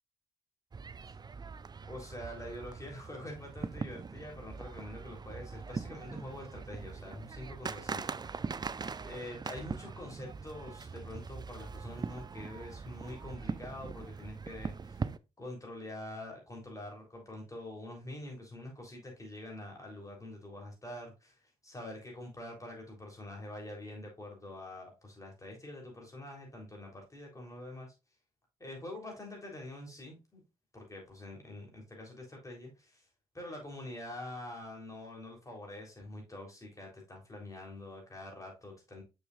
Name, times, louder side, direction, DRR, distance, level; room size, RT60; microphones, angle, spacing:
sound 1, 0.7-15.2, right 5 dB, 30° right, 0.4 m, -41 dB
voice 1, 1.8-8.6 9.0-15.0 15.4-21.4 21.6-27.9 28.6-30.4 30.7-33.0 33.3-39.0, left 1 dB, 20° left, 0 dB, 3.7 m, -45 dB
6.4 x 6.2 x 2.5 m, 0.26 s
supercardioid pair, 60°, 15 cm